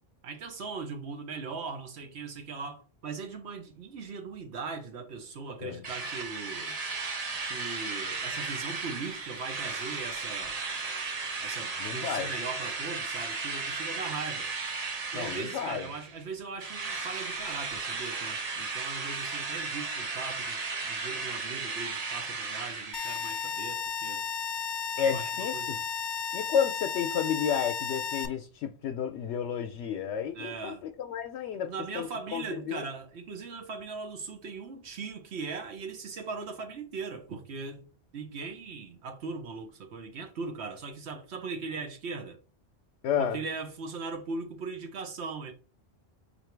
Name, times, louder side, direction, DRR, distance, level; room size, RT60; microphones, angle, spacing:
voice 1, 0.2-6.8 7.5-10.6 11.4-14.5 15.1-24.2 25.0-25.8 30.3-30.8 31.6-37.8 38.1-42.4 43.2-45.5, right 4 dB, 75° right, 1.2 m, -39 dB
Drill, 5.8-16.2 16.6-23.5, right 4 dB, 40° right, 0.7 m, -35 dB
voice 2, 11.8-12.3 15.1-15.9 25.0-25.8 26.3-31.7 31.9-32.8 43.0-43.4, left 8 dB, 85° left, 0.9 m, -31 dB
sound 1, 22.9-28.3, left 7 dB, 50° left, 0.7 m, -34 dB
4.3 x 2.7 x 4.4 m
omnidirectional pair, 1.1 m